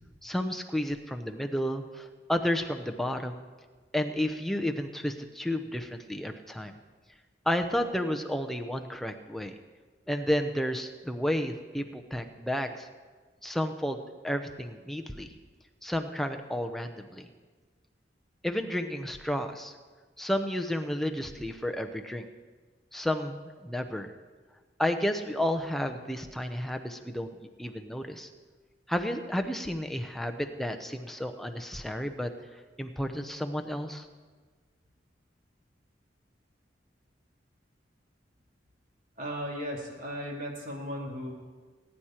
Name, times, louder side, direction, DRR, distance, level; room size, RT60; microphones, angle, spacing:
voice 1, 0.2-3.5 3.9-6.7 7.5-9.5 10.1-12.9 13.4-15.3 15.8-17.2 18.4-19.7 20.2-22.3 22.9-24.1 24.8-28.3 28.9-32.3 32.8-34.1, left 1 dB, ahead, 4 dB, 0.7 m, -31 dB
voice 2, 39.2-41.3, equal, 45° right, -1 dB, 2.6 m, -36 dB
19.5 x 10.0 x 4.4 m, 1.4 s
head